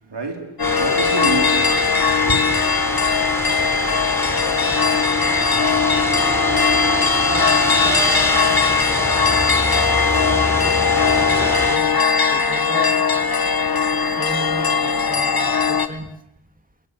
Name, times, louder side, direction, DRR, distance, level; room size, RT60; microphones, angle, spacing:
voice 1, 0.1-2.5, right 3 dB, 65° right, 4.4 m, -28 dB
sound 1, 0.6-15.9, left 5 dB, 55° left, 1.7 m, -19 dB
sound 2, 0.6-11.8, left 1 dB, 5° left, 3.6 m, -25 dB
voice 2, 7.2-9.3 10.3-11.9 12.3-12.9 14.1-16.1, right 1 dB, 20° right, 3.1 m, -33 dB
30.0 x 21.5 x 7.1 m
wide cardioid pair, 115°, 45 cm